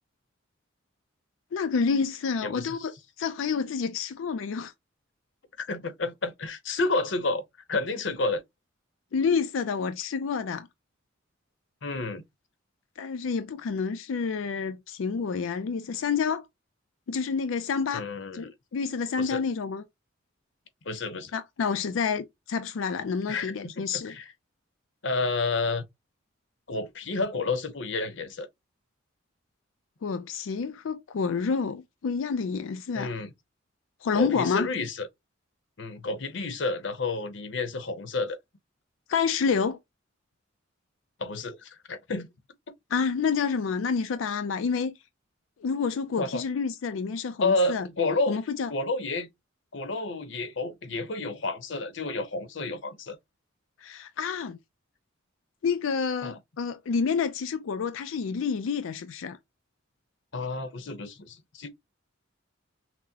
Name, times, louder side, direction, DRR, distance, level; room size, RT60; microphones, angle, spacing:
voice 1, 1.5-2.9 3.2-4.7 9.1-10.7 13.0-16.5 17.1-18.0 18.3-19.8 21.3-24.1 30.0-33.1 34.0-34.7 39.1-39.8 42.9-44.9 45.6-47.9 48.3-48.7 53.8-54.6 55.6-59.4, left 5 dB, 85° left, 0.4 m, -28 dB
voice 2, 5.6-7.4 7.7-8.4 11.8-12.2 17.9-18.4 19.2-19.4 20.9-21.3 23.3-23.7 24.1-24.3 25.0-25.8 26.7-28.5 32.9-33.3 34.1-35.1 35.8-38.4 41.2-42.3 46.2-46.4 47.4-48.4 48.7-49.3 49.7-53.2 56.2-56.4 60.3-61.7, left 3 dB, 65° left, 0.8 m, -30 dB
6.0 x 2.0 x 2.7 m
head